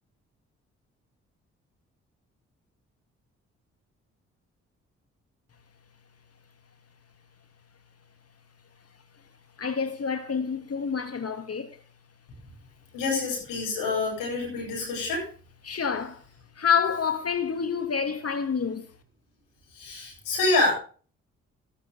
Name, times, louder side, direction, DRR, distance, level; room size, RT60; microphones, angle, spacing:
voice 1, 9.6-11.7 15.6-16.2 16.6-18.9, left 6 dB, 45° left, 2.5 m, -28 dB
voice 2, 12.9-15.2 19.7-20.7, left 3 dB, 75° left, 7.9 m, -27 dB
13.5 x 13.0 x 3.7 m
hypercardioid pair, 40°, 33 cm